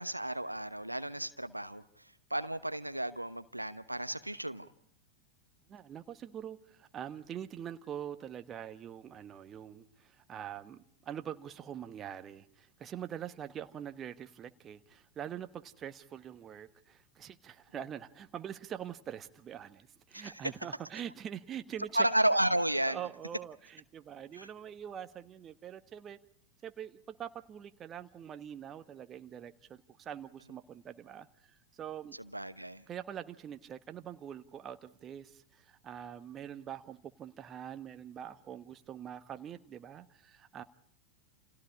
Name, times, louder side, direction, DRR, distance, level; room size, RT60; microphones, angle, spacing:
voice 1, 0.0-4.7 20.1-20.3 21.9-23.0 24.3-24.5 32.2-32.8, right 1 dB, 85° right, 1.0 m, -32 dB
voice 2, 5.7-22.1 22.9-26.2 26.6-32.2 32.9-40.6, right 9 dB, 25° right, 1.3 m, -44 dB
29.5 x 29.0 x 4.9 m
figure-of-eight pair, 90°, 0 cm